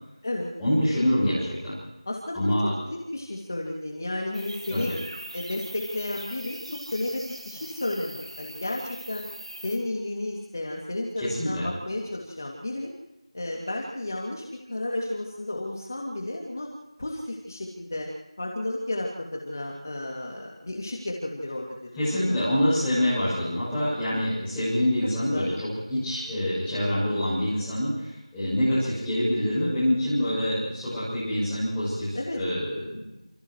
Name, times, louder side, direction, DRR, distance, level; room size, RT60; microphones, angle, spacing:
voice 1, 0.6-1.8 2.3-2.7 4.7-4.9 11.2-11.7 22.0-33.1, equal, 5° left, -14 dB, 7.7 m, -26 dB
voice 2, 2.1-2.4 2.9-4.9 5.3-9.3 9.6-12.9 13.3-16.7 17.0-18.1 18.4-22.4 23.5-23.6 24.8-24.9 25.3-25.5 32.1-32.4, left 1 dB, 35° left, -1 dB, 2.6 m, -32 dB
sound 1, 4.3-9.8, right 1 dB, 65° right, 6.5 m, -41 dB
29.5 x 28.0 x 3.2 m, 1.0 s
figure-of-eight pair, 175°, 3 cm